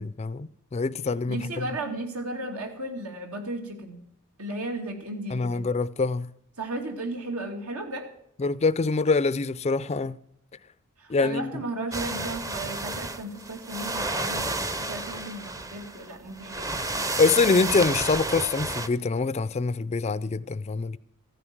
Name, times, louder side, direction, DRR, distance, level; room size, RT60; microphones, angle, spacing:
voice 1, 0.0-1.6 5.3-6.3 8.4-10.2 11.1-11.5 17.2-21.0, left 4 dB, 30° left, 0.4 m, -25 dB
voice 2, 1.3-4.0 4.4-5.6 6.6-8.1 11.0-17.0, right 2 dB, 85° right, 2.5 m, -35 dB
sound 1, 11.9-18.9, right 2 dB, 15° right, 0.6 m, -31 dB
15.0 x 9.9 x 6.0 m
head